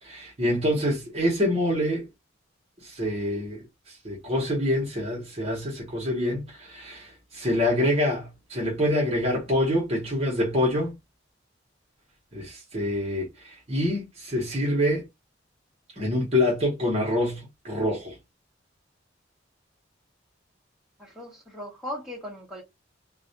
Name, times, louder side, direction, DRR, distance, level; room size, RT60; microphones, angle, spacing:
voice 1, 0.0-2.1 2.8-11.0 12.3-15.0 16.0-18.2, left 1 dB, 30° right, 0.8 m, -26 dB
voice 2, 21.0-22.6, left 1 dB, ahead, 0.9 m, -38 dB
2.3 x 2.0 x 2.7 m
head